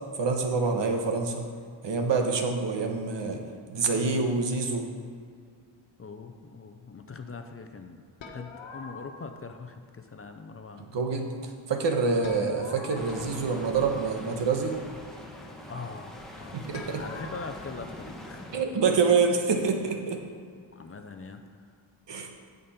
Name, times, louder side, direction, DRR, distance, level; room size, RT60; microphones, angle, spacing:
voice 1, 0.2-1.5 1.8-3.4 3.7-4.9 10.8-14.8 16.5-17.0 18.5-20.2 22.1-22.3, right 4 dB, 65° right, 3 dB, 1.3 m, -26 dB
voice 2, 6.0-8.0 8.3-10.8 15.7-18.5 20.7-21.4, left 4 dB, 30° left, 6 dB, 0.6 m, -42 dB
sound 1, 8.2-9.5 12.2-14.1 16.7-17.5, left 4 dB, 70° left, 1.3 m, -44 dB
sound 2, 12.9-18.7, left 1 dB, ahead, 1.4 m, -43 dB
15.5 x 5.4 x 4.3 m, 2.2 s
cardioid pair, 105°, 48 cm